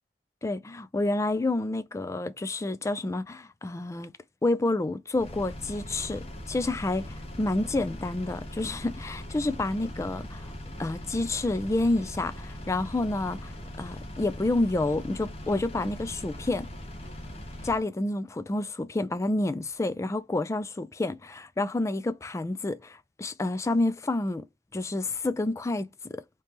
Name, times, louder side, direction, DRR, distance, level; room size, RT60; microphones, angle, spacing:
voice 1, 0.4-4.1 4.4-10.5 10.8-13.5 13.8-16.7 17.6-24.4 24.7-26.2, left 2 dB, 15° left, 0.3 m, -29 dB
Engine, 5.1-17.8, left 1 dB, 35° left, 0.9 m, -40 dB
3.1 x 2.9 x 3.4 m
head